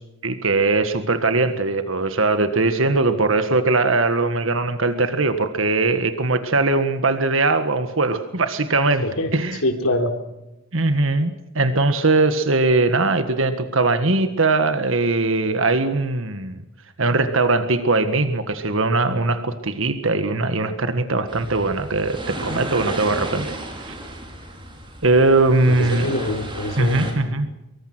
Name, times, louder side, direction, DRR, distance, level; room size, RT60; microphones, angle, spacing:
voice 1, 0.2-9.1 9.3-9.6 10.7-16.6 17.0-23.9 25.0-26.1 26.8-27.5, right 3 dB, 65° right, 9 dB, 1.7 m, -20 dB
voice 2, 9.6-10.1 25.7-27.1, left 1 dB, 80° left, 6 dB, 4.0 m, -24 dB
sound 1, 21.3-27.1, right 1 dB, 25° right, 5.6 m, -33 dB
24.5 x 23.5 x 6.2 m, 0.92 s
head